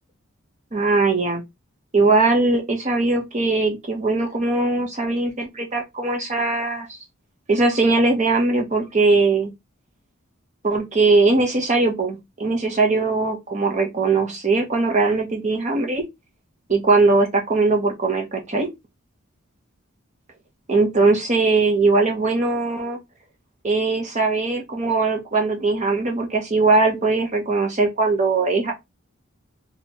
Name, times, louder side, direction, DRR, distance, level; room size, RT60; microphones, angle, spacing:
voice 1, 0.7-1.4 1.9-7.0 7.5-9.5 10.6-16.0 16.7-18.7 20.7-23.0 23.6-28.7, right 3 dB, 35° right, 0.7 m, -20 dB
4.4 x 2.8 x 2.8 m
head